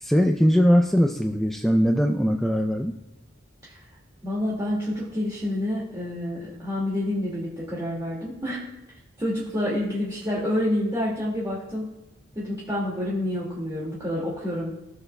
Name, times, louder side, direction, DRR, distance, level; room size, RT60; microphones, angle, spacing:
voice 1, 0.0-2.9, equal, ahead, 3 dB, 0.4 m, -20 dB
voice 2, 4.2-8.7 9.2-11.9 12.4-14.8, left 1 dB, 20° right, -7 dB, 2.1 m, -28 dB
16.0 x 6.9 x 2.3 m, 0.95 s
head